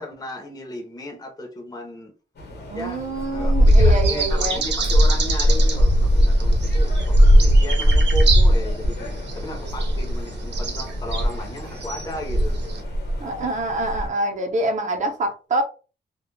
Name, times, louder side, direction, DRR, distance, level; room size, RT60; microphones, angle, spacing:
voice 1, 0.0-2.1 2.7-3.0 3.3-12.6, left 1 dB, 20° left, 0.6 m, -35 dB
sound 1, 2.4-14.1, equal, 70° left, 0.8 m, -22 dB
voice 2, 2.7-4.6 13.2-15.6, right 2 dB, 45° right, 0.6 m, -25 dB
sound 2, 3.7-12.8, equal, 85° right, 0.6 m, -21 dB
2.2 x 2.0 x 3.1 m
wide cardioid pair, 125°, 18 cm